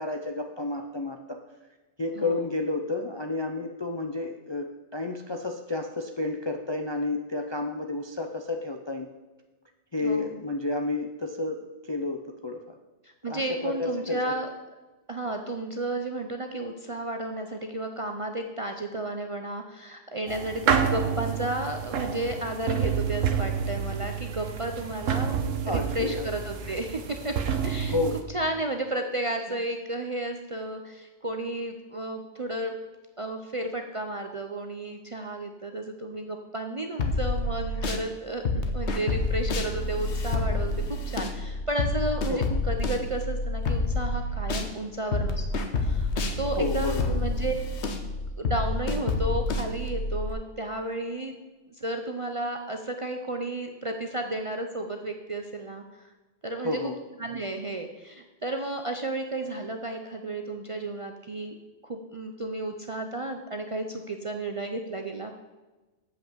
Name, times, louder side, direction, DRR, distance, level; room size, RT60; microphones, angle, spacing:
voice 1, 0.0-1.4 2.0-9.1 9.9-12.8 13.3-14.4 25.6-26.3 26.6-26.7 27.9-28.2 37.8-38.0 38.5-39.0 42.3-42.6 46.6-47.2 56.6-57.0, left 3 dB, 35° left, 4 dB, 0.4 m, -31 dB
voice 2, 10.0-10.4 13.2-14.5 15.1-25.3 25.7-27.3 27.6-28.0 28.3-32.7 33.2-38.4 38.7-45.4 45.8-46.1 46.4-47.5 48.4-51.3 51.8-55.8 56.4-56.8 57.2-61.5 61.8-65.3, right 2 dB, 35° right, 4 dB, 0.5 m, -32 dB
sound 1, 20.3-28.2, right 7 dB, 90° right, 1.2 m, -29 dB
sound 2, 37.0-38.0 38.5-44.7 45.1-50.3, left 2 dB, 65° left, 1.2 m, -28 dB
7.9 x 5.6 x 7.3 m, 1.2 s
omnidirectional pair, 1.3 m